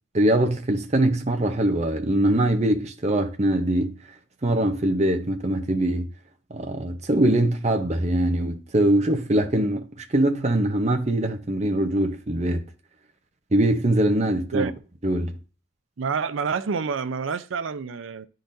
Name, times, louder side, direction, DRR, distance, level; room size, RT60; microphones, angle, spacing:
voice 1, 0.1-3.9 4.4-6.1 6.5-12.6 13.5-14.7 15.0-15.3, right 1 dB, 35° right, 0.8 m, -22 dB
voice 2, 16.0-18.3, right 5 dB, 80° right, 0.5 m, -28 dB
10.0 x 3.9 x 2.6 m
head